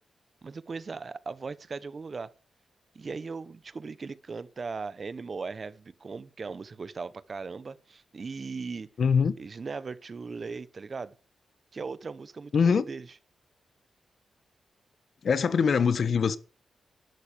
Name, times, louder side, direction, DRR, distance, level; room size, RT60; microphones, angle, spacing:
voice 1, 0.4-2.3 2.9-8.9 9.4-11.1 11.7-13.1, right 4 dB, 35° right, 1.1 m, -38 dB
voice 2, 9.0-9.3 12.5-12.8 15.2-16.4, left 6 dB, 55° left, 1.2 m, -23 dB
12.0 x 12.0 x 6.8 m
wide cardioid pair, 155°, 0 cm